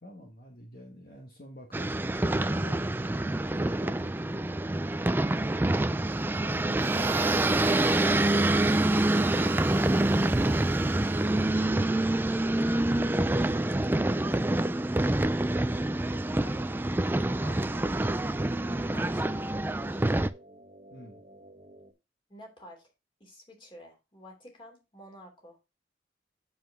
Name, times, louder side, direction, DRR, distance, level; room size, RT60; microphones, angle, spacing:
voice 1, 0.0-4.6 6.4-7.1 20.9-21.2, equal, 55° left, 1 dB, 1.5 m, -47 dB
sound 1, 1.7-20.3, right 1 dB, 10° right, 0.3 m, -26 dB
Harmonica, 6.7-11.7, right 11 dB, 85° right, 0.4 m, -41 dB
voice 2, 13.3-14.4 16.4-18.0 18.9-20.0 22.3-22.9 23.2-25.6, equal, 30° left, 2 dB, 3.1 m, -50 dB
sound 2, 15.4-21.9, right 1 dB, 45° right, 1.3 m, -53 dB
7.5 x 7.2 x 3.6 m, 0.26 s
head